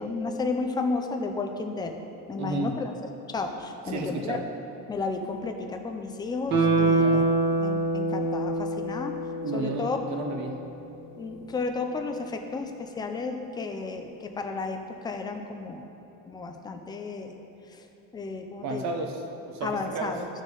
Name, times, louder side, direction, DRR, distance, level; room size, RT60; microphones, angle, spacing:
voice 1, 0.0-1.9 2.3-2.9 3.3-4.4 4.9-7.3 7.6-9.1 9.5-10.0 11.2-15.9 16.3-17.3 17.7-17.8 18.1-19.0 19.6-20.3, left 3 dB, 10° left, 5 dB, 0.4 m, -32 dB
voice 2, 2.4-2.8 3.9-4.4 7.0-7.2 9.4-10.6 18.6-20.2, right 2 dB, 50° right, 3 dB, 1.0 m, -32 dB
Guitar, 6.5-9.8 10.1-10.2, right 2 dB, 35° right, 1.5 m, -24 dB
13.5 x 6.3 x 3.9 m, 3.0 s
cardioid pair, 175°, 35 cm